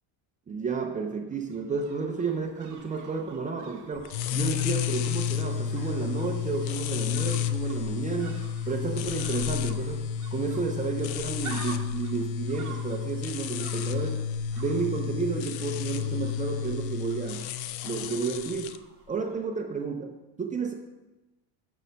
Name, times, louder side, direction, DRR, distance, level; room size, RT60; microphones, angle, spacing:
voice 1, 0.5-14.2 14.6-17.5 17.8-20.7, right 5 dB, 20° right, 3 dB, 0.3 m, -32 dB
sound 1, 1.3-19.5 19.7-19.8, right 5 dB, 35° right, 1.1 m, -49 dB
sound 2, 4.1-18.8, left 9 dB, 70° left, 0.5 m, -31 dB
6.6 x 6.4 x 5.1 m, 1.0 s
cardioid pair, 170°, 49 cm